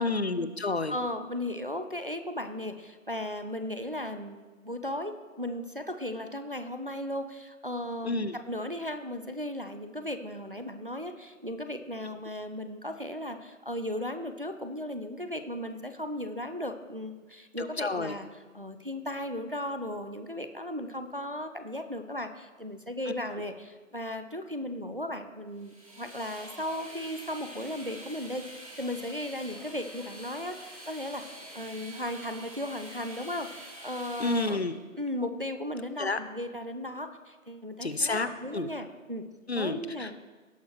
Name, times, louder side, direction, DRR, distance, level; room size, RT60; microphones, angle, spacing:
voice 1, 0.0-0.9 8.0-8.4 17.6-18.1 23.1-23.2 34.2-34.8 36.0-36.2 37.8-38.7 39.5-40.1, left 3 dB, 50° left, 12 dB, 0.5 m, -30 dB
voice 2, 0.9-18.3 18.5-31.2 31.5-34.6 35.0-39.2 39.6-40.1, left 1 dB, 40° right, 8 dB, 0.5 m, -36 dB
sound 1, 25.6-34.5, right 1 dB, 25° right, 1.5 m, -46 dB
17.5 x 6.4 x 3.1 m, 1.3 s
figure-of-eight pair, 175°, 41 cm